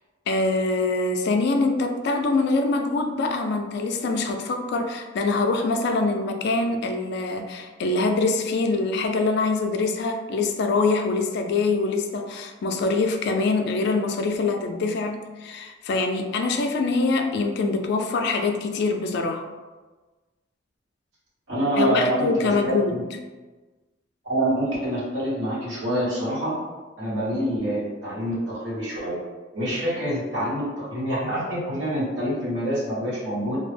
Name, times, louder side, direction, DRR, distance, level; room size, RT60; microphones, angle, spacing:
voice 1, 0.3-19.4 21.8-23.0, left 3 dB, 65° left, 5 dB, 0.3 m, -24 dB
voice 2, 21.5-23.0 24.2-26.6 27.0-29.2 29.5-33.6, right 1 dB, 75° right, -8 dB, 1.1 m, -26 dB
2.2 x 2.0 x 3.2 m, 1.3 s
head